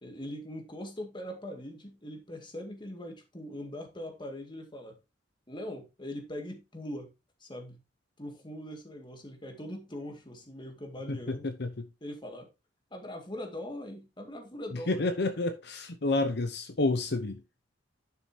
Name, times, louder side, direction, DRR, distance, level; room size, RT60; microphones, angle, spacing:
voice 1, 0.0-5.0 5.5-7.1 7.4-7.8 8.2-11.5 12.0-12.5 12.9-15.1, left 1 dB, 25° left, 2.1 m, -41 dB
voice 2, 11.1-11.8 14.9-17.4, left 2 dB, 65° left, 0.9 m, -30 dB
11.0 x 6.9 x 2.9 m
head